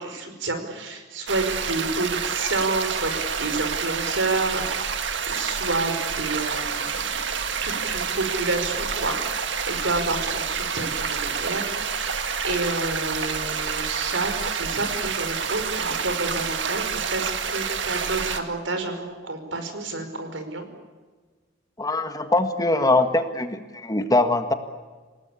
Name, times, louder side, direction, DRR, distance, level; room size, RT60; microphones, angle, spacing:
voice 1, 0.0-4.8 5.3-7.2 7.6-20.7, right 2 dB, 85° right, 7 dB, 5.1 m, -29 dB
sound 1, 1.3-18.4, right 6 dB, 70° right, 1.9 m, -28 dB
voice 2, 21.8-24.5, left 2 dB, 20° left, 8 dB, 1.7 m, -22 dB
29.0 x 18.5 x 8.5 m, 1.4 s
head